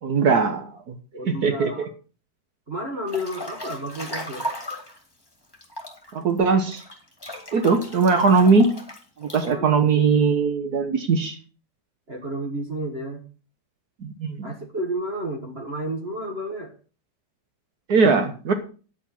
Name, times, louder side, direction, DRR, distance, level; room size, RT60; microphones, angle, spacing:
voice 1, 0.0-1.0 1.3-1.9 6.1-6.8 7.5-8.7 9.2-11.4 14.0-14.5 17.9-18.5, right 4 dB, 65° right, 6 dB, 1.6 m, -20 dB
voice 2, 1.1-1.8 2.7-4.4 9.4-9.9 12.1-13.2 14.4-16.7, right 1 dB, 40° right, 2 dB, 1.7 m, -31 dB
Breathing / Bathtub (filling or washing) / Splash splatter, 3.1-5.0 5.5-9.5, equal, 15° left, 2.4 m, -36 dB
10.5 x 8.1 x 5.8 m, 0.37 s
omnidirectional pair, 1.9 m